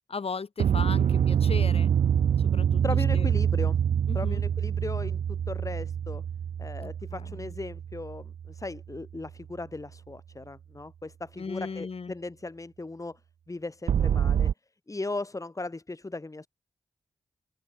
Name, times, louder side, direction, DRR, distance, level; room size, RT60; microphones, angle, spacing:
voice 1, 0.1-1.9 2.4-2.8 3.1-3.3 4.1-4.4 6.8-7.5 11.4-12.1, left 5 dB, 60° left, 7.5 m, -37 dB
sound 1, 0.6-9.0 13.9-14.5, right 8 dB, 85° right, 0.9 m, -26 dB
voice 2, 2.8-3.8 4.1-6.2 6.6-13.2 13.5-14.5 14.9-16.5, left 2 dB, 30° left, 2.3 m, -37 dB
open air
cardioid pair, 55°, 11 cm